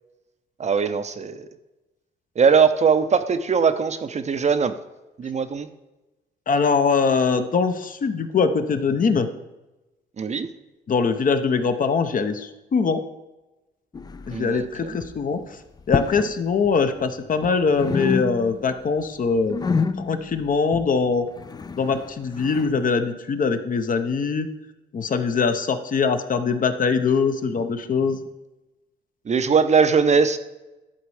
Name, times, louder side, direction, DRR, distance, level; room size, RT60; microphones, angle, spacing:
voice 1, 0.6-1.5 2.4-4.8 5.2-5.7 10.2-10.5 14.3-14.9 29.3-30.4, right 6 dB, 35° right, 10 dB, 0.6 m, -20 dB
voice 2, 6.5-9.3 10.9-13.0 14.3-15.6 15.9-19.6 20.0-21.2 21.8-24.5 24.9-28.2, left 5 dB, 45° left, 9 dB, 0.7 m, -22 dB
sound 1, 13.9-14.6 14.9-15.3 15.8-16.4 16.6-17.5 17.8-18.7 19.0-22.8, left 4 dB, 20° left, 0.4 m, -29 dB
11.5 x 4.1 x 4.8 m, 1.0 s
cardioid pair, 90°, 20 cm